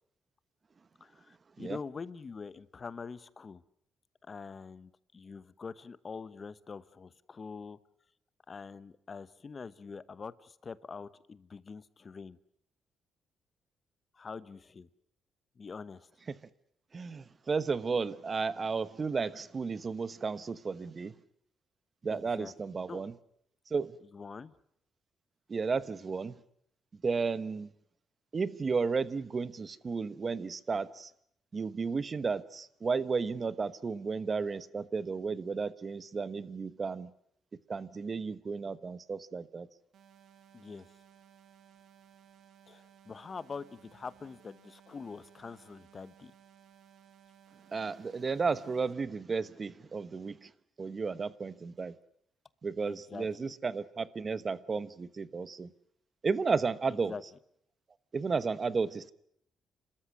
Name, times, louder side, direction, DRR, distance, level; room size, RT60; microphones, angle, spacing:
voice 1, 1.0-3.6 4.3-7.8 8.5-12.4 14.1-14.9 15.6-16.1 22.1-22.5 22.9-23.1 24.1-24.5 40.5-40.9 42.7-46.3 52.8-53.5 56.9-57.2, left 5 dB, 35° left, 16 dB, 1.0 m, -44 dB
voice 2, 16.9-21.1 22.0-23.1 23.7-24.0 25.5-26.4 27.0-27.7 28.3-31.1 31.5-37.1 37.7-39.7 47.7-50.5 50.8-51.9 52.6-55.7 56.2-57.1 58.1-59.1, right 4 dB, 35° right, 15 dB, 1.1 m, -33 dB
sound 1, 39.9-48.9, right 9 dB, 70° right, 2.1 m, -60 dB
30.0 x 13.5 x 9.8 m, 0.72 s
cardioid pair, 90°, 0 cm